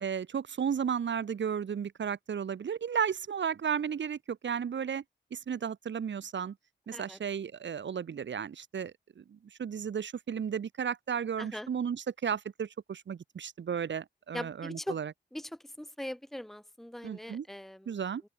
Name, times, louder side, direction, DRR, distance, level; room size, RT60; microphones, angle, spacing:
voice 1, 0.0-5.0 5.3-6.6 6.9-15.1 17.0-17.5 17.9-18.2, right 7 dB, 70° right, 2.2 m, -34 dB
voice 2, 11.4-11.7 14.3-15.0 15.3-18.0, left 1 dB, ahead, 1.4 m, -41 dB
open air
wide cardioid pair, 120°, 20 cm